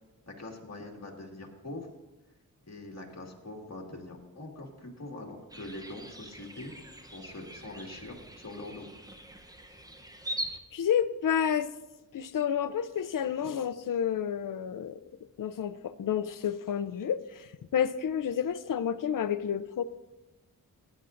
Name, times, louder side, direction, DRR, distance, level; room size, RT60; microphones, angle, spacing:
voice 1, 0.3-1.9 2.7-6.7 7.1-8.9, left 2 dB, 45° left, 0 dB, 2.0 m, -43 dB
sound 1, 5.5-10.6, right 1 dB, 10° right, 0.8 m, -42 dB
voice 2, 10.7-11.7 12.1-15.0 15.4-19.8, left 8 dB, 60° left, 12 dB, 0.5 m, -30 dB
17.5 x 9.7 x 2.6 m, 1.0 s
wide cardioid pair, 105°, 36 cm